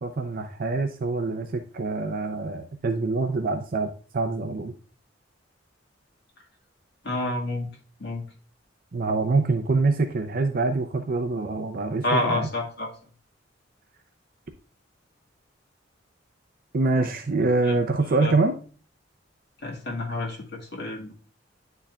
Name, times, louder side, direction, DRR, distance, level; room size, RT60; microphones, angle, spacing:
voice 1, 0.0-4.7 8.9-12.5 16.7-18.5, right 3 dB, 50° right, 5 dB, 0.5 m, -25 dB
voice 2, 7.0-7.7 8.0-8.2 12.0-12.9 17.7-17.8 18.2-18.3 19.6-21.1, left 2 dB, 60° left, -1 dB, 1.7 m, -28 dB
10.0 x 4.6 x 2.3 m, 0.40 s
head